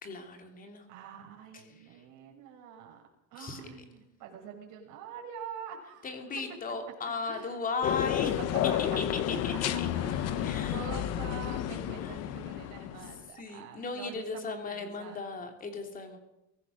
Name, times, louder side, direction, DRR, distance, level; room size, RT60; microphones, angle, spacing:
voice 1, 0.0-0.9 1.5-2.0 3.4-3.6 6.0-8.4 8.8-9.9 10.4-10.9 12.0-12.2 13.0-16.2, left 4 dB, 25° left, 5 dB, 3.1 m, -37 dB
voice 2, 0.9-3.0 3.3-6.1 7.3-7.5 9.9-15.2, right 7 dB, 55° right, 2 dB, 6.1 m, -45 dB
sound 1, 7.8-13.2, left 11 dB, 45° left, 1.1 m, -31 dB
23.0 x 17.5 x 6.5 m, 0.88 s
cardioid pair, 170°, 36 cm